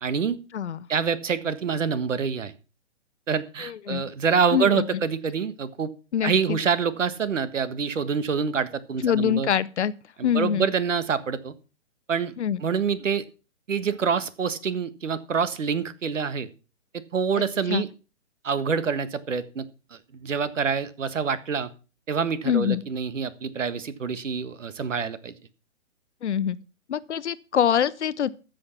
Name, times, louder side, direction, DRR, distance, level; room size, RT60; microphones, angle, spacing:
voice 1, 0.0-0.4 0.9-2.5 3.3-5.9 6.2-9.5 10.2-11.5 12.1-12.3 12.6-13.2 13.7-16.5 16.9-17.9 18.4-21.7 22.1-25.3, right 6 dB, 80° right, 1.5 m, -26 dB
voice 2, 3.6-4.0 4.5-4.8 6.1-6.6 9.0-9.9 10.2-10.7 12.4-12.6 17.7-17.8 22.4-22.8 26.2-26.6 26.9-28.3, left 9 dB, 65° left, 0.8 m, -24 dB
13.5 x 6.5 x 5.9 m
hypercardioid pair, 155°, 37 cm